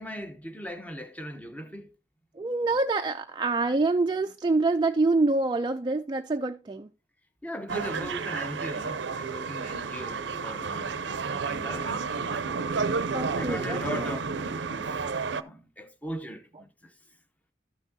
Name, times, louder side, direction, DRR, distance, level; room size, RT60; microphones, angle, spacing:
voice 1, 0.0-1.9 7.4-12.5 13.4-15.0 15.3-16.9, equal, 10° left, 0.8 m, -39 dB
voice 2, 2.4-6.9 13.1-14.2, right 3 dB, 25° right, 0.3 m, -26 dB
sound 1, 7.7-15.4, right 5 dB, 80° right, 0.5 m, -31 dB
13.0 x 6.1 x 2.7 m
head